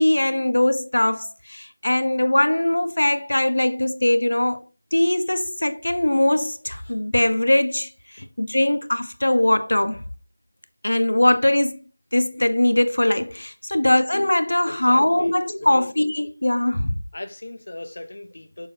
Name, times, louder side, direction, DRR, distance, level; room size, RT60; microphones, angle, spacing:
voice 1, 0.0-4.6 4.9-10.0 10.8-11.8 12.1-16.9, left 1 dB, 85° left, 0.9 m, -21 dB
voice 2, 14.7-15.9 17.1-18.7, left 2 dB, 40° left, 0.9 m, -37 dB
6.7 x 6.5 x 2.8 m
figure-of-eight pair, 180°, 0 cm